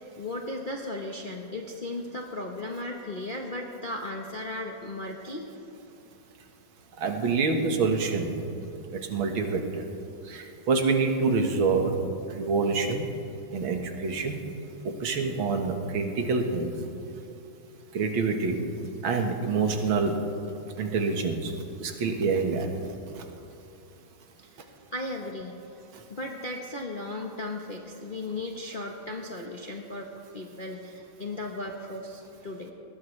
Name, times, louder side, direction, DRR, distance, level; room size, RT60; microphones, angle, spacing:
voice 1, 0.2-5.5 24.4-25.6 26.1-32.7, left 2 dB, 35° left, 0 dB, 1.0 m, -36 dB
voice 2, 7.0-8.3 9.1-9.8 10.3-11.9 12.3-13.1 13.5-14.4 14.8-16.7 17.9-18.6 19.0-20.2 20.8-21.5 21.8-22.7, right 4 dB, 75° right, 4 dB, 2.2 m, -26 dB
21.5 x 19.5 x 3.3 m, 2.8 s
omnidirectional pair, 2.3 m